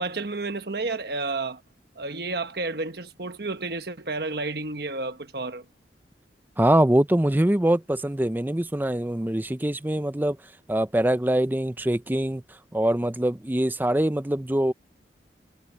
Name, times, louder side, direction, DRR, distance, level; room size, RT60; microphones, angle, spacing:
voice 1, 0.0-1.6 2.0-5.6, right 3 dB, 60° right, 1.3 m, -31 dB
voice 2, 6.6-10.4 10.7-12.4 12.7-14.7, right 1 dB, 10° right, 0.5 m, -23 dB
head